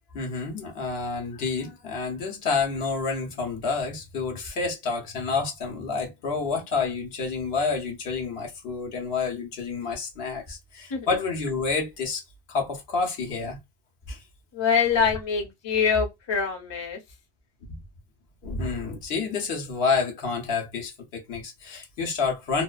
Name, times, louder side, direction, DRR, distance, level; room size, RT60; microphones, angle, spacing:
voice 1, 0.1-12.2 12.5-13.6 14.1-14.2 17.7-17.8 18.4-22.6, left 4 dB, 75° left, 1.0 m, -29 dB
voice 2, 14.5-17.0, left 6 dB, 30° left, 0.6 m, -24 dB
2.5 x 2.2 x 2.3 m
omnidirectional pair, 1.1 m